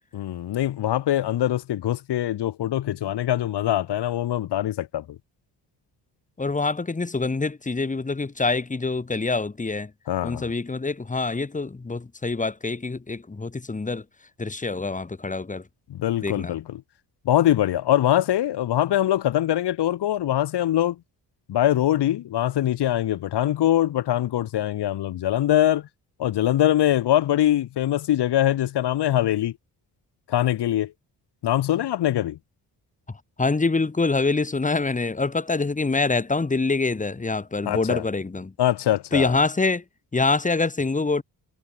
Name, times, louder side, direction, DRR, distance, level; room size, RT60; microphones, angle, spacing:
voice 1, 0.1-5.2 10.1-10.5 15.9-16.8 17.2-21.0 21.5-25.9 26.2-29.5 30.3-30.9 31.4-32.4 37.6-38.0 38.6-39.4, left 12 dB, 75° left, 3.2 m, -23 dB
voice 2, 6.4-9.9 10.2-14.0 14.4-15.6 16.2-16.5 33.4-38.5 39.1-39.8 40.1-41.2, left 3 dB, 20° left, 6.0 m, -25 dB
cardioid pair, 150°, 41 cm